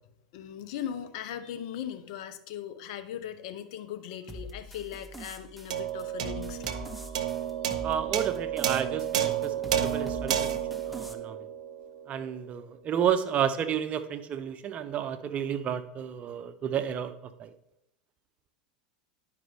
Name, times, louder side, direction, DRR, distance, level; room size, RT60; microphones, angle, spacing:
voice 1, 0.3-6.8, left 9 dB, 65° left, 10 dB, 0.7 m, -39 dB
sound 1, 4.3-11.1, equal, ahead, 0.9 m, -44 dB
sound 2, 5.7-12.3, right 10 dB, 75° right, 0.7 m, -31 dB
voice 2, 7.8-10.5 10.9-11.5 12.1-17.1 17.4-17.5, right 9 dB, 35° right, 11 dB, 0.7 m, -31 dB
11.0 x 5.1 x 3.4 m, 0.81 s
hypercardioid pair, 100°, 4 cm